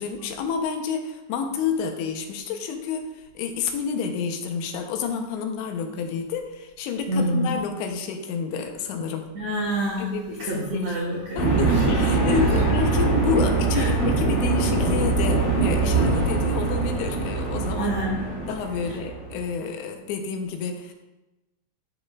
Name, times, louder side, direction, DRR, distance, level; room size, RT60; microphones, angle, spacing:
voice 1, 0.0-9.3 10.0-10.9 11.4-17.9 18.5-20.9, left 6 dB, 80° left, 4 dB, 3.0 m, -29 dB
voice 2, 7.1-7.5 9.3-12.1 12.6-12.7 13.7-13.9 17.8-18.3, right 1 dB, 80° right, -4 dB, 1.6 m, -27 dB
sound 1, 11.4-19.4, right 3 dB, 35° left, 3.1 m, -23 dB
12.5 x 7.0 x 2.4 m, 1.0 s
omnidirectional pair, 5.2 m